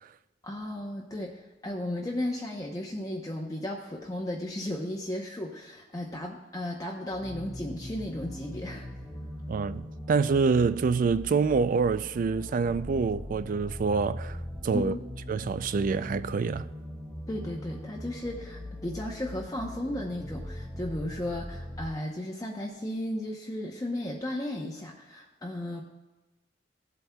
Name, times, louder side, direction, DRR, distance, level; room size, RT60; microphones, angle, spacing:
voice 1, 0.4-8.9 14.7-15.0 17.3-25.8, left 1 dB, 20° left, 0.8 m, -35 dB
sound 1, 7.1-21.9, left 1 dB, ahead, 1.7 m, -41 dB
voice 2, 9.5-14.4 14.6-14.9 15.3-16.7, right 5 dB, 45° right, 0.3 m, -26 dB
16.0 x 8.0 x 2.3 m
head